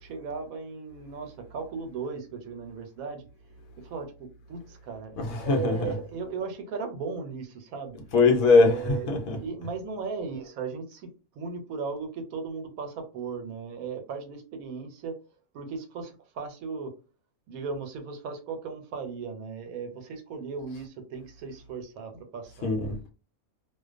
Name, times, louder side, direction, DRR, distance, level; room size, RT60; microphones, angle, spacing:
voice 1, 0.0-3.3 3.8-8.0 8.6-11.1 11.3-15.2 15.5-16.9 17.5-22.7, right 5 dB, 80° right, 1.0 m, -37 dB
voice 2, 5.2-5.9 8.1-9.4 22.6-23.1, left 3 dB, 75° left, 1.0 m, -22 dB
2.4 x 2.2 x 2.4 m
omnidirectional pair, 1.5 m